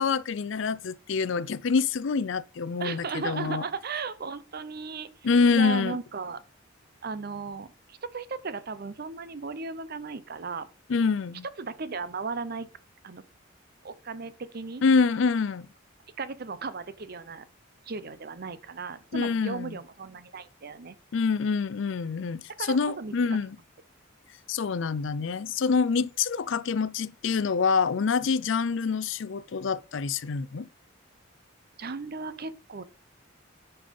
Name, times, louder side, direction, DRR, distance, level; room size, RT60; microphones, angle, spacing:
voice 1, 0.0-3.6 5.2-6.0 10.9-11.4 14.8-15.7 19.1-19.8 21.1-23.6 24.5-30.7, left 5 dB, 65° left, 0.5 m, -26 dB
voice 2, 2.8-5.1 5.5-6.4 7.0-10.7 11.6-12.7 13.0-13.2 13.8-14.8 16.2-17.5 17.9-21.0 22.6-23.1 31.8-32.8, right 4 dB, 50° right, 0.7 m, -36 dB
10.0 x 5.5 x 5.2 m
head